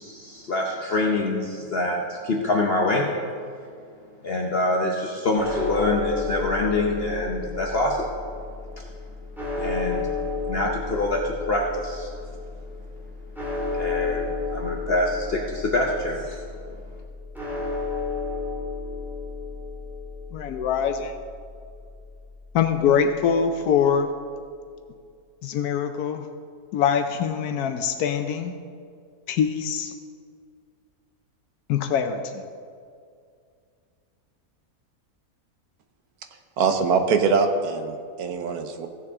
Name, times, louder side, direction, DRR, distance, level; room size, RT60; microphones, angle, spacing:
voice 1, 0.0-3.1 4.2-8.1 8.8-8.9 9.6-10.1 10.5-12.1 13.7-16.4, left 2 dB, 50° left, 0 dB, 0.9 m, -25 dB
sound 1, 5.4-23.6, left 4 dB, ahead, 1.8 m, -33 dB
voice 2, 20.3-21.1 22.5-24.1 25.4-26.2 26.7-28.5 29.3-29.9 31.7-32.4, left 7 dB, 85° left, 7 dB, 1.1 m, -23 dB
voice 3, 36.6-38.9, right 5 dB, 90° right, 7 dB, 1.3 m, -23 dB
15.5 x 7.3 x 3.6 m, 2.2 s
omnidirectional pair, 1.6 m